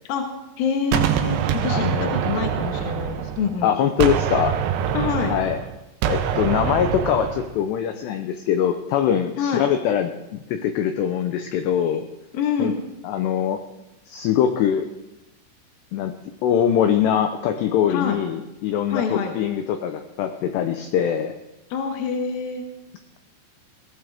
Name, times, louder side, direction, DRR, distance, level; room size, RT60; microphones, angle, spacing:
voice 1, 0.6-3.7 4.9-5.3 9.4-9.6 12.3-12.8 17.9-18.2 18.9-19.4 21.7-22.6, left 6 dB, 65° left, 3 dB, 2.5 m, -26 dB
Gunshot gunfire, 0.9-3.6 4.0-7.5, right 9 dB, 80° right, 2.5 m, -24 dB
voice 2, 1.7-2.1 3.6-4.6 5.3-5.6 6.1-12.0 12.6-12.7 13.0-13.6 14.1-14.9 15.9-16.1 16.4-21.3, left 9 dB, 85° left, 7 dB, 2.4 m, -22 dB
19.0 x 15.5 x 3.5 m, 0.94 s
omnidirectional pair, 5.9 m